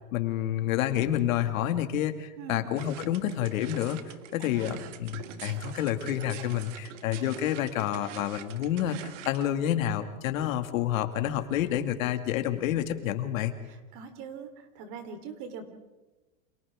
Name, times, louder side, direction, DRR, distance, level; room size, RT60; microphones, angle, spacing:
voice 1, 0.1-4.0 4.3-13.5, left 11 dB, 70° left, 7 dB, 2.3 m, -29 dB
sound 1, 2.8-9.5, right 10 dB, 60° right, 1.8 m, -45 dB
voice 2, 4.4-4.8 13.7-14.5 14.8-15.6, right 5 dB, 45° right, 6 dB, 3.7 m, -42 dB
29.5 x 27.5 x 3.7 m, 1.1 s
supercardioid pair, 145°, 42 cm